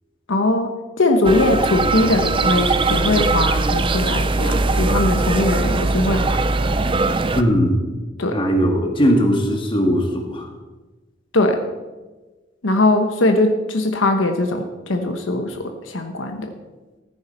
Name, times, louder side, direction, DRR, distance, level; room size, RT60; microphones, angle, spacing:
voice 1, 0.3-6.4 8.2-8.4 11.3-11.6 12.6-16.5, left 2 dB, 80° left, 6 dB, 1.1 m, -20 dB
sound 1, 1.2-7.4, right 3 dB, 25° right, 0.5 m, -20 dB
voice 2, 7.3-7.8 8.3-10.5, equal, 25° left, 2 dB, 1.8 m, -19 dB
14.5 x 9.6 x 4.4 m, 1.2 s
head